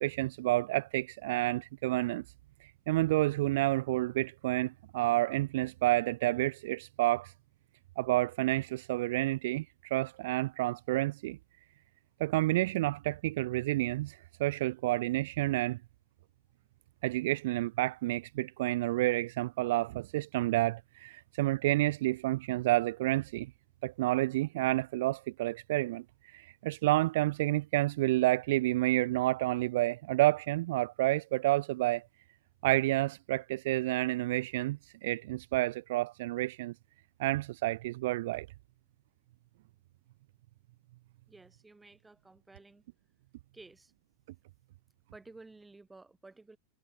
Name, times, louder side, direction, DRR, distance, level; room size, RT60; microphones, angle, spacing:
voice 1, 0.0-2.2 2.6-7.3 8.0-11.4 12.2-15.8 17.0-23.5 23.8-32.1 32.6-36.7 37.2-38.5, right 17 dB, 55° right, 0.4 m, -29 dB
voice 2, 41.3-42.8 43.5-43.9 45.1-46.6, right 3 dB, 10° right, 4.3 m, -54 dB
figure-of-eight pair, 90°, 0 cm